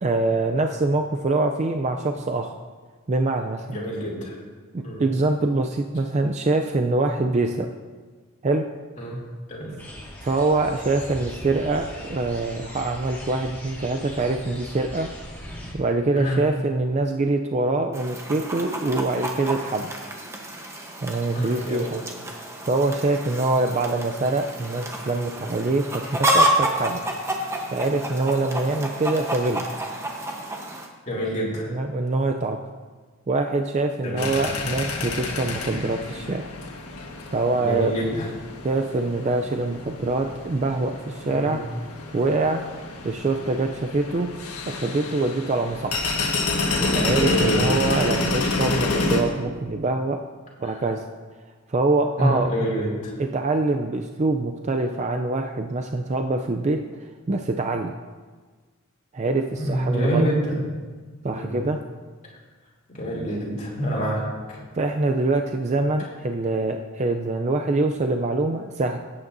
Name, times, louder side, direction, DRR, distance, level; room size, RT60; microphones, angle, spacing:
voice 1, 0.0-2.5 3.1-3.8 4.7-7.7 8.4-8.6 10.2-15.1 15.7-19.9 21.0-22.0 22.6-27.0 27.7-29.6 31.7-32.6 33.3-36.5 37.3-37.9 38.6-41.6 42.1-42.6 43.0-44.3 44.7-46.1 46.9-50.2 50.6-51.1 51.7-52.5 53.2-56.8 57.3-57.9 59.1-60.3 61.2-61.8 64.7-69.0, right 2 dB, 30° right, 4 dB, 0.4 m, -24 dB
voice 2, 3.6-4.3 4.8-5.0 9.0-9.2 9.5-9.7 16.2-16.4 21.3-21.9 31.1-31.7 34.0-34.3 37.6-38.3 41.3-41.6 46.8-47.8 50.6-50.7 52.2-53.1 59.6-60.6 61.3-61.6 62.9-64.2 64.5-64.6, equal, 35° left, -4 dB, 2.8 m, -26 dB
sound 1, 9.8-15.7, equal, 10° left, 1.8 m, -39 dB
Chicken rooster, 17.9-30.9, right 1 dB, 10° right, 0.9 m, -29 dB
sound 2, 34.2-49.2, left 3 dB, 85° left, 1.5 m, -29 dB
17.5 x 8.7 x 2.6 m, 1.4 s
head